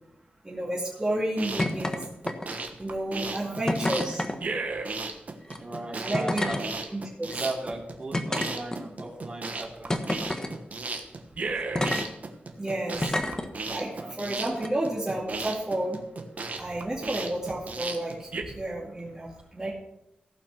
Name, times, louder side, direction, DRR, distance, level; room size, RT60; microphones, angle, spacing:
voice 1, 0.4-2.0 2.8-4.2 6.0-6.5 6.9-7.4 12.6-13.1 13.7-16.0 16.6-19.7, right 1 dB, 20° right, -5 dB, 2.3 m, -31 dB
sound 1, 1.3-18.4, right 3 dB, 55° right, 1.3 m, -35 dB
sound 2, 1.6-2.0 2.3-2.7 3.7-4.4 5.4-5.6 6.1-6.6 7.3-7.4 8.1-9.0 9.9-10.5 11.8-12.1 13.0-13.5 14.6-14.7, left 1 dB, 20° left, 1.2 m, -29 dB
voice 2, 5.6-6.5 7.3-10.2 14.0-14.1, right 2 dB, 40° right, -2 dB, 3.3 m, -37 dB
15.5 x 5.9 x 6.0 m, 0.85 s
wide cardioid pair, 90°, 3 cm